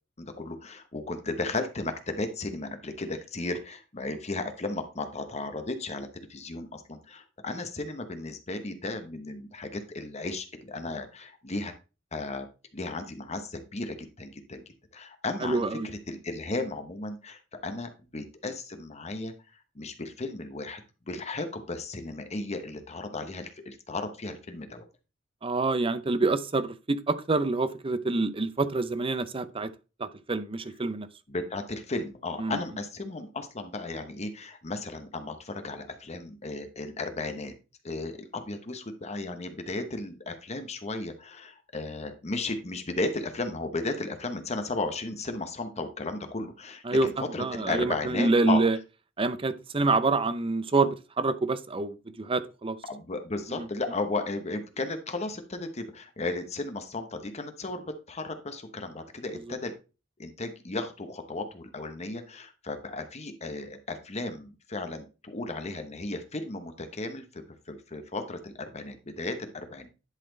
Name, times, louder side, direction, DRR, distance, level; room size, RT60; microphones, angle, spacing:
voice 1, 0.2-11.7 12.1-12.5 12.7-14.6 14.9-19.3 19.7-20.8 21.1-24.8 31.3-37.5 37.8-48.6 52.8-59.7 60.2-69.9, left 2 dB, 35° left, 1.0 m, -35 dB
voice 2, 15.4-15.9 25.4-29.7 30.0-31.1 32.4-32.6 46.8-48.8 49.2-52.8 53.5-53.7, right 3 dB, 30° right, 0.6 m, -27 dB
10.5 x 4.2 x 3.9 m
head